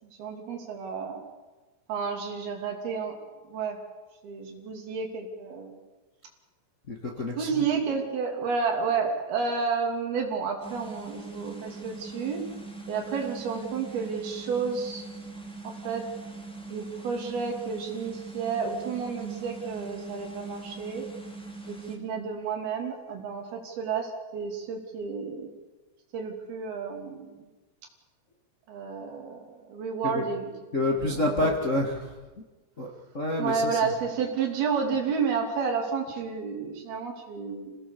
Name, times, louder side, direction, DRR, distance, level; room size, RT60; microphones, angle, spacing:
voice 1, 0.0-1.2 1.9-3.2 3.5-3.8 4.2-5.8 7.4-12.4 12.9-15.0 15.6-16.0 16.7-21.0 21.7-25.5 26.1-27.5 28.7-29.4 29.7-30.5 31.0-31.6 33.4-37.8, right 5 dB, 65° right, 2 dB, 4.6 m, -31 dB
voice 2, 6.9-7.6 30.0-30.2 30.7-32.1 32.8-33.9, left 1 dB, 75° left, -1 dB, 0.7 m, -28 dB
sound 1, 10.6-22.0, right 3 dB, ahead, 1.5 m, -42 dB
26.0 x 18.0 x 6.9 m, 1.2 s
omnidirectional pair, 5.0 m